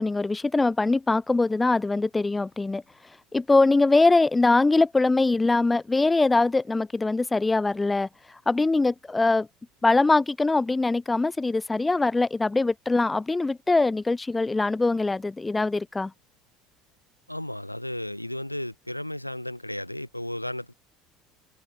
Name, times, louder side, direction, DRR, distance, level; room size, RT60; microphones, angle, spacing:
voice 1, 0.0-2.8 3.3-8.1 8.5-9.5 9.8-16.1, left 3 dB, 15° left, 0.3 m, -22 dB
voice 2, 17.3-20.7, left 1 dB, 90° left, 1.0 m, -34 dB
figure-of-eight pair, 65°, 0 cm